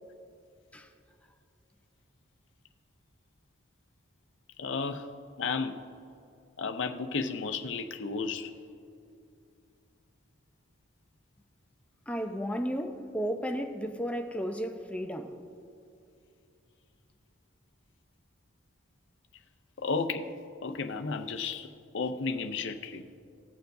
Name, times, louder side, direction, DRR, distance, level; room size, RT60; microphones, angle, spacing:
voice 1, 4.6-5.1 5.4-5.8 6.6-8.5 19.8-20.3 20.6-23.2, left 4 dB, 65° left, 0.6 m, -33 dB
voice 2, 12.1-15.4, equal, 5° left, 0.5 m, -33 dB
20.0 x 6.9 x 2.6 m
head